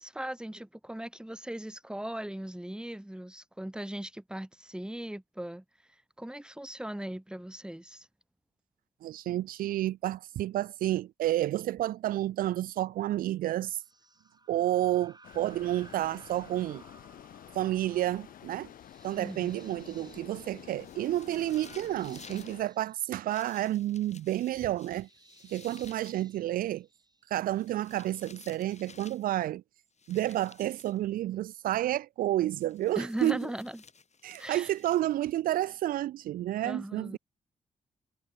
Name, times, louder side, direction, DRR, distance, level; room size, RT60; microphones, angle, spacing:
voice 1, 0.0-5.6 6.2-8.1 19.2-19.6 32.9-33.8 34.4-34.7 36.6-37.2, right 1 dB, 5° right, 1.2 m, -39 dB
voice 2, 9.0-13.8 14.5-16.8 17.5-18.7 19.0-25.1 25.5-26.9 27.3-29.6 30.1-33.5 34.2-37.2, right 14 dB, 75° right, 0.4 m, -30 dB
creepy tone, 13.8-27.6, right 2 dB, 30° right, 5.7 m, -59 dB
sound 1, 15.2-22.6, left 11 dB, 75° left, 0.9 m, -50 dB
sound 2, 20.6-22.6 23.3-26.2 27.5-29.3 30.0-31.0 32.6-35.4, left 5 dB, 50° left, 4.9 m, -55 dB
supercardioid pair, 40°, 15 cm